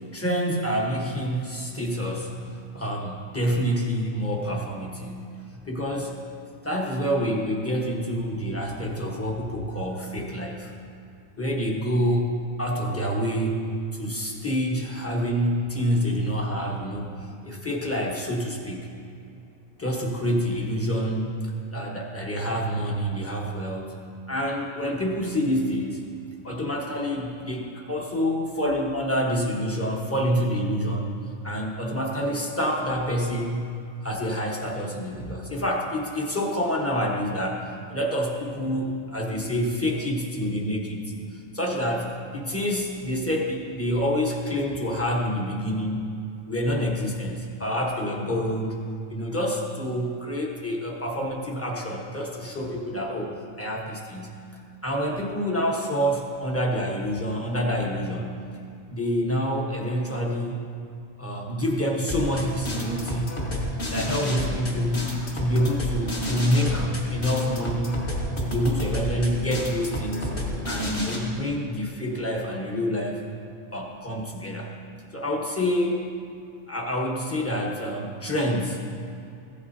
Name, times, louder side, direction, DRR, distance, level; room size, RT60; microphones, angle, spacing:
voice 1, 0.1-5.3 5.6-6.2 6.6-10.7 11.4-17.1 17.4-18.9 19.8-21.4 21.7-23.9 24.3-26.0 26.4-31.1 31.4-33.7 34.0-46.1 46.5-48.8 49.1-54.4 54.8-58.3 58.9-60.6 61.2-63.5 63.9-65.0 65.3-68.0 68.4-70.3 70.7-73.2 73.7-74.7 75.1-76.1 76.7-78.8, equal, 10° left, -2 dB, 1.1 m, -27 dB
sound 1, 62.1-71.2, left 1 dB, 40° left, 1.8 m, -30 dB
15.5 x 8.5 x 2.7 m, 2.6 s
omnidirectional pair, 1.3 m